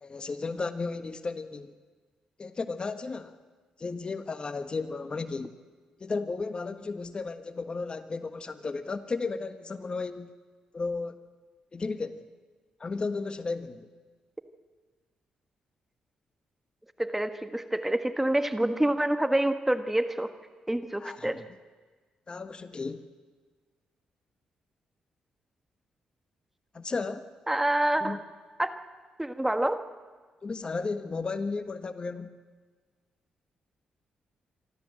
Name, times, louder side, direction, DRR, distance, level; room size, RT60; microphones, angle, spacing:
voice 1, 0.0-1.7 2.4-3.4 3.8-5.5 6.0-10.3 10.7-11.2 11.7-12.2 12.8-13.9 21.0-21.4 22.3-23.0 26.7-27.3 28.0-28.2 30.4-32.3, left 4 dB, 40° left, 10 dB, 1.3 m, -34 dB
voice 2, 17.0-20.3 20.7-21.4 27.5-28.2 28.6-28.7 29.2-29.8, right 1 dB, 10° right, 9 dB, 1.5 m, -27 dB
25.5 x 13.5 x 7.7 m, 1.4 s
supercardioid pair, 55°, 3 cm